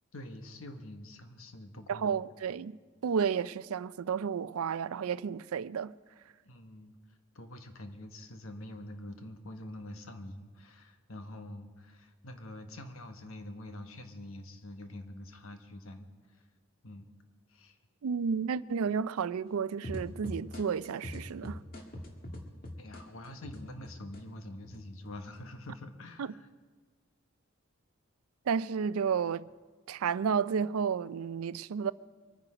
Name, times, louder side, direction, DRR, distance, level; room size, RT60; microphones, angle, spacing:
voice 1, 0.1-2.1 6.4-16.5 16.8-17.1 17.5-17.8 22.8-26.5, left 1 dB, 75° left, 1.2 m, -46 dB
voice 2, 1.9-2.8 3.0-5.9 18.0-21.6 26.2-26.3 28.5-29.5 29.9-31.9, right 6 dB, 85° right, 0.4 m, -31 dB
sound 1, 19.8-24.2 24.6-25.4, left 1 dB, 45° left, 1.9 m, -42 dB
24.0 x 9.9 x 5.0 m
head